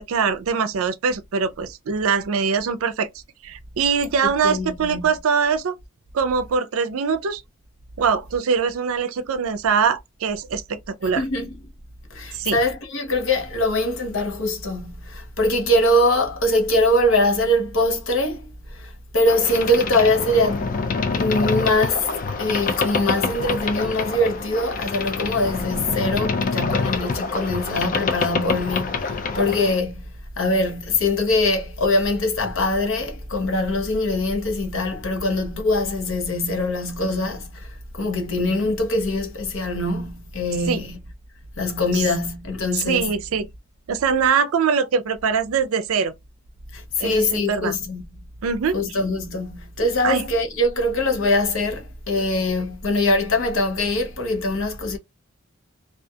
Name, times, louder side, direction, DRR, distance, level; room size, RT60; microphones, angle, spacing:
voice 1, 0.0-3.1 3.4-5.8 6.1-7.4 8.0-11.2 12.3-12.6 40.7-40.8 41.9-42.0 42.7-43.5 43.9-46.1 47.0-47.7 48.4-48.8 50.0-50.2, right 6 dB, 75° right, 0.4 m, -22 dB
voice 2, 4.4-5.1 11.2-11.5 12.1-20.7 21.1-22.1 22.4-41.0 41.6-43.1 46.7-48.2 48.7-55.0, left 1 dB, 65° left, 0.8 m, -23 dB
Boat Water vehicle, 19.3-29.8, left 4 dB, 35° left, 0.3 m, -26 dB
2.4 x 2.3 x 2.6 m
head